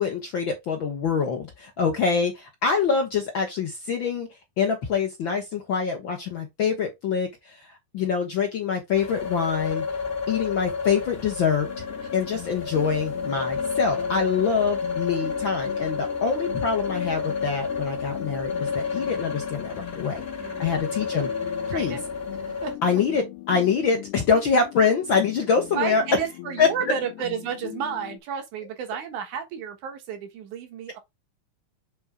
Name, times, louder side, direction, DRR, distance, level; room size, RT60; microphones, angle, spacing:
voice 1, 0.0-4.3 4.6-7.7 7.9-9.8 10.3-11.7 12.1-20.2 20.6-21.3 21.7-22.0 22.8-26.0 26.6-26.7, left 5 dB, 60° left, 1.4 m, -25 dB
sound 1, 8.9-22.7, left 5 dB, 35° left, 1.0 m, -30 dB
sound 2, 11.7-28.2, left 18 dB, 85° left, 2.3 m, -41 dB
voice 2, 20.4-20.8 21.7-22.1 22.6-22.7 25.7-31.0, right 8 dB, 75° right, 2.8 m, -32 dB
7.0 x 4.1 x 3.6 m
omnidirectional pair, 3.5 m